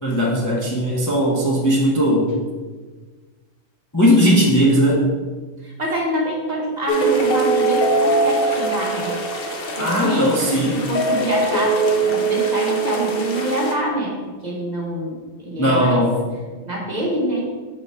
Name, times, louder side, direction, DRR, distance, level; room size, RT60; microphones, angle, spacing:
voice 1, 0.0-2.3 3.9-5.1 9.8-10.8 15.6-16.1, equal, 15° left, -4 dB, 0.8 m, -18 dB
voice 2, 5.6-9.2 9.4-10.3 10.7-14.1 14.4-15.2 15.4-16.0 16.7-17.5, right 1 dB, 35° right, -3 dB, 1.3 m, -25 dB
sound 1, 6.9-13.7, right 3 dB, 50° left, 0.9 m, -21 dB
5.5 x 3.9 x 5.5 m, 1.4 s
omnidirectional pair, 1.3 m